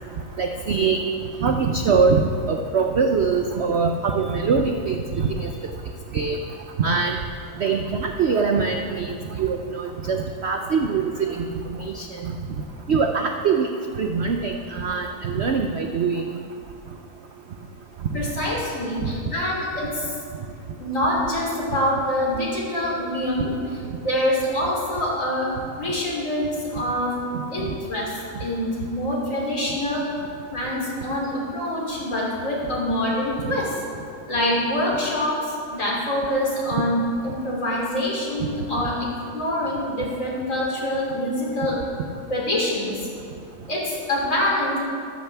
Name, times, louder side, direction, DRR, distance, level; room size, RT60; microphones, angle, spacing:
voice 1, 0.4-1.1 1.4-2.2 2.5-5.5 6.1-6.4 6.8-7.2 7.6-10.2 10.4-11.5 11.8-12.1 12.9-13.7 14.0-16.2, right 5 dB, 60° right, 4 dB, 0.7 m, -23 dB
voice 2, 18.1-20.1 20.8-25.5 25.8-27.1 27.5-30.0 30.5-33.8 34.3-39.1 39.3-41.8 42.3-43.0 43.7-44.8, left 1 dB, 45° left, -4 dB, 3.5 m, -25 dB
14.5 x 13.5 x 3.5 m, 2.4 s
omnidirectional pair, 1.8 m